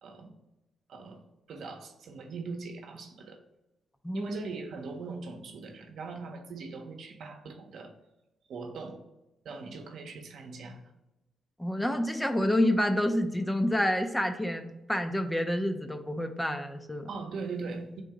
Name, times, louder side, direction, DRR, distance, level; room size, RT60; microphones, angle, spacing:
voice 1, 0.9-1.2 1.5-3.4 4.1-7.9 8.5-9.0 9.4-10.8 17.1-18.0, right 4 dB, 70° right, 4 dB, 0.8 m, -40 dB
voice 2, 11.6-17.1, left 1 dB, 10° left, 6 dB, 0.5 m, -28 dB
3.8 x 2.7 x 4.8 m, 0.97 s
cardioid pair, 85°, 0 cm